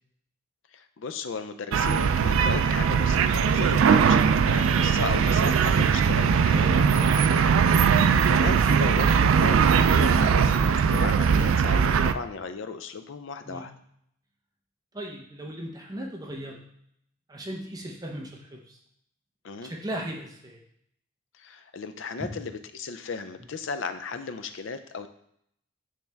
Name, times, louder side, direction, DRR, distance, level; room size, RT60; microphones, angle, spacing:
voice 1, 0.7-7.5 8.1-13.7 19.4-19.7 21.4-25.1, left 4 dB, 75° left, 10 dB, 0.5 m, -35 dB
sound 1, 1.7-12.1, right 6 dB, 80° right, 0.3 m, -20 dB
voice 2, 14.9-16.6 17.3-18.8 19.6-20.6 22.2-22.4, right 1 dB, 20° right, -1 dB, 0.7 m, -37 dB
8.6 x 3.4 x 3.4 m, 0.72 s
head